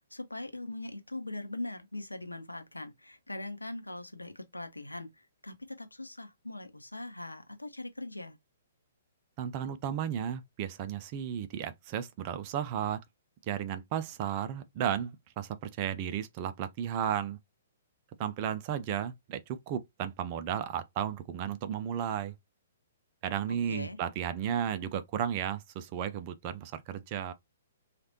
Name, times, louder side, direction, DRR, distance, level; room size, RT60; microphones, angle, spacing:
voice 1, 0.1-5.1 5.4-8.4 23.5-24.0, left 2 dB, 85° left, 0.7 m, -41 dB
voice 2, 9.4-13.0 13.5-17.4 18.2-19.4 19.7-22.3 23.2-27.3, right 9 dB, 35° right, 0.5 m, -34 dB
3.2 x 2.5 x 2.7 m
figure-of-eight pair, 120°, 0 cm